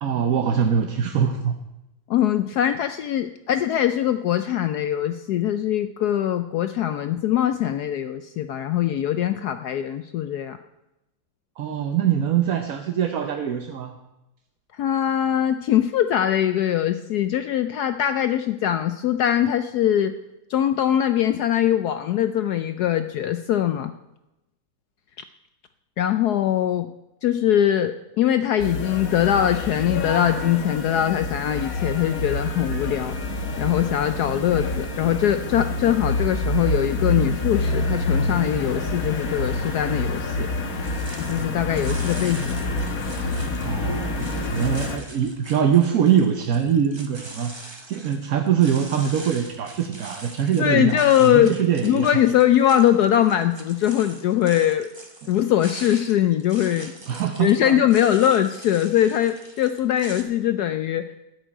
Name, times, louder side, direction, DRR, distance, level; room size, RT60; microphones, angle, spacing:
voice 1, 0.0-1.6 11.6-14.0 43.6-47.5 47.9-52.2 55.2-55.3 57.1-57.9, right 8 dB, 55° right, 6 dB, 1.1 m, -23 dB
voice 2, 2.1-10.6 14.8-20.1 20.5-23.9 26.0-26.9 27.2-33.1 33.6-40.5 41.3-42.6 50.6-51.6 51.8-54.9 55.3-56.9 57.4-61.2, left 11 dB, 75° left, 10 dB, 0.9 m, -22 dB
sound 1, 28.6-45.0, left 2 dB, 50° left, 1.5 m, -27 dB
sound 2, 40.8-60.2, right 2 dB, 20° right, 0.9 m, -43 dB
13.0 x 6.4 x 8.8 m, 0.95 s
omnidirectional pair, 2.1 m